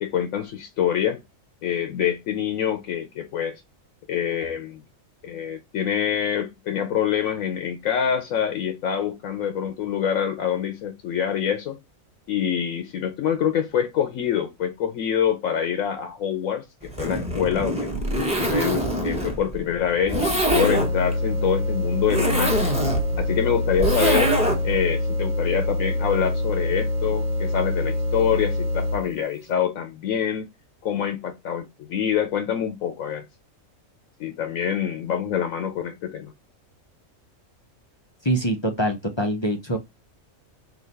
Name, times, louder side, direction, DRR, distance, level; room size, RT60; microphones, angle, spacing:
voice 1, 0.0-1.2 1.6-3.6 4.1-4.8 5.2-11.8 12.3-17.9 18.4-22.8 23.2-24.4 24.6-30.5 30.8-33.3 34.2-36.3, left 8 dB, 75° left, 1.1 m, -26 dB
Zipper (clothing), 16.8-24.8, right 1 dB, 5° right, 1.0 m, -24 dB
sound 1, 20.5-29.2, left 1 dB, 75° right, 1.0 m, -25 dB
voice 2, 38.2-39.8, right 1 dB, 35° left, 0.5 m, -24 dB
4.0 x 2.8 x 4.0 m
omnidirectional pair, 1.4 m